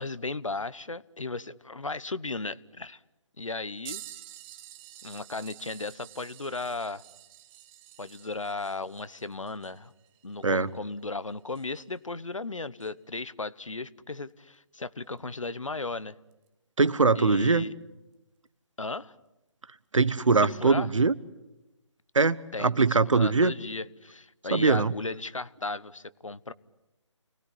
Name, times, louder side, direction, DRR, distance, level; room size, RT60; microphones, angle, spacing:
voice 1, 0.0-3.0 3.4-4.0 5.0-7.0 8.0-9.9 10.2-16.2 17.1-17.7 18.8-19.2 20.4-20.9 22.5-26.5, left 3 dB, 90° left, 1.1 m, -35 dB
sound 1, 3.9-12.1 12.8-12.9 15.2-15.3 16.3-16.5 17.5-17.6, right 13 dB, 15° right, 0.9 m, -49 dB
voice 2, 16.8-17.7 19.9-21.1 22.1-23.5 24.5-24.9, right 4 dB, 80° right, 1.3 m, -22 dB
29.5 x 20.0 x 10.0 m
figure-of-eight pair, 145°, 16 cm